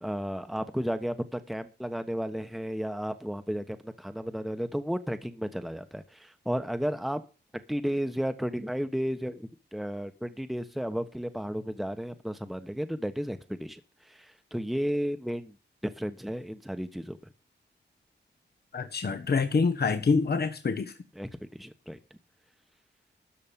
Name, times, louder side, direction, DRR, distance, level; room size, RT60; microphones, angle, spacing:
voice 1, 0.0-7.2 7.7-15.5 15.8-17.2 21.1-22.0, equal, ahead, 9 dB, 1.2 m, -33 dB
voice 2, 18.7-20.9, left 4 dB, 60° left, 7 dB, 1.4 m, -26 dB
13.0 x 5.2 x 8.8 m, 0.33 s
wide cardioid pair, 80°, 19 cm